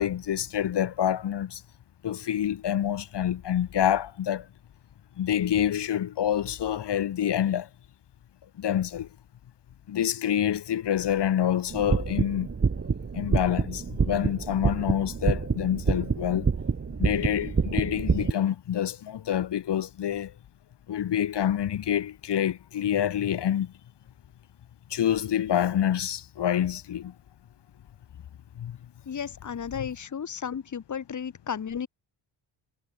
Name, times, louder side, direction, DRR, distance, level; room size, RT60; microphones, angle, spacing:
voice 1, 0.0-1.6 2.0-4.5 5.2-7.7 8.6-9.1 9.9-12.5 13.1-16.5 17.0-20.3 20.9-23.7 24.9-27.1 28.6-28.8, left 10 dB, 55° left, 3.0 m, -27 dB
sound 1, 11.7-18.3, right 5 dB, 25° right, 3.0 m, -27 dB
voice 2, 29.1-31.9, left 7 dB, 35° left, 2.9 m, -34 dB
cardioid pair, 135°, 48 cm